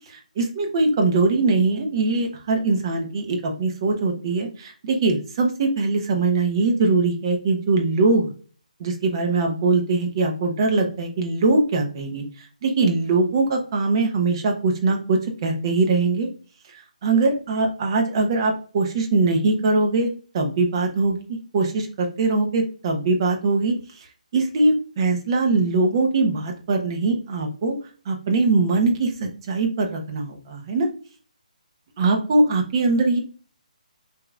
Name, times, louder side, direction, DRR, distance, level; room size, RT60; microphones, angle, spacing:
voice 1, 0.1-8.3 8.8-12.2 12.6-16.3 17.0-20.1 20.3-21.2 21.5-23.8 24.3-27.8 28.1-29.1 29.5-30.9 32.0-33.2, right 3 dB, 35° right, 2 dB, 0.9 m, -21 dB
4.7 x 2.9 x 2.4 m, 0.39 s
figure-of-eight pair, 150°, 4 cm